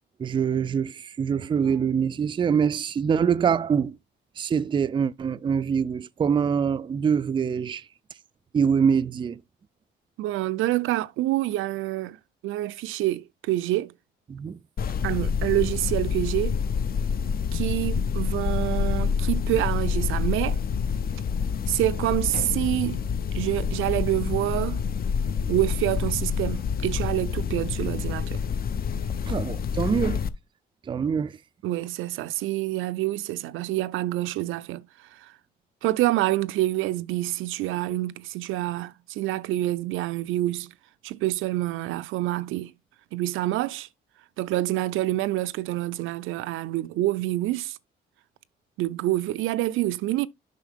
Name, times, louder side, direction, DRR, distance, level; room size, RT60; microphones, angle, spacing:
voice 1, 0.2-4.0 4.4-7.8 8.5-9.4 14.3-14.6 29.3-30.2 30.9-31.3, right 7 dB, 25° right, 0.3 m, -24 dB
voice 2, 10.2-12.2 12.4-13.9 15.0-16.6 17.5-20.6 21.7-23.0 23.3-24.8 25.5-28.4 31.6-34.9 35.1-35.3 35.8-40.7 41.0-42.7 43.1-43.9 44.4-47.8 48.8-50.3, right 16 dB, 85° right, 0.4 m, -27 dB
sound 1, 14.8-30.3, left 6 dB, 50° left, 0.6 m, -27 dB
7.5 x 5.5 x 3.5 m
cardioid pair, 90°, 20 cm